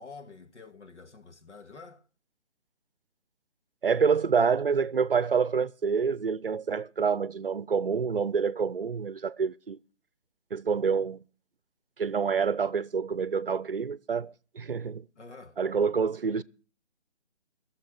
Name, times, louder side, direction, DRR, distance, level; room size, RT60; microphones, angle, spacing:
voice 1, 0.0-2.1 15.2-15.6, left 4 dB, 80° left, 1.9 m, -48 dB
voice 2, 3.8-9.8 10.5-11.2 12.0-15.1 15.6-16.4, right 6 dB, 50° right, 0.6 m, -27 dB
18.5 x 7.1 x 6.4 m
hypercardioid pair, 175°, 35 cm